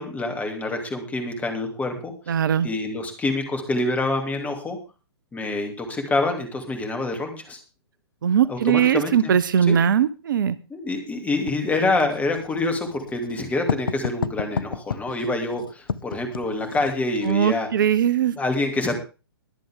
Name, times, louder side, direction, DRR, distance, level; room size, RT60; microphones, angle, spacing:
voice 1, 0.0-4.8 5.3-7.6 8.5-9.3 9.6-9.8 10.7-17.7 18.3-19.0, left 2 dB, 10° left, 4 dB, 2.9 m, -26 dB
voice 2, 2.3-2.7 8.2-10.6 17.3-18.3, right 8 dB, 55° right, 17 dB, 0.7 m, -20 dB
Writing, 11.5-17.4, left 6 dB, 60° left, 0.9 m, -32 dB
22.0 x 7.6 x 3.7 m, 0.32 s
figure-of-eight pair, 120°, 13 cm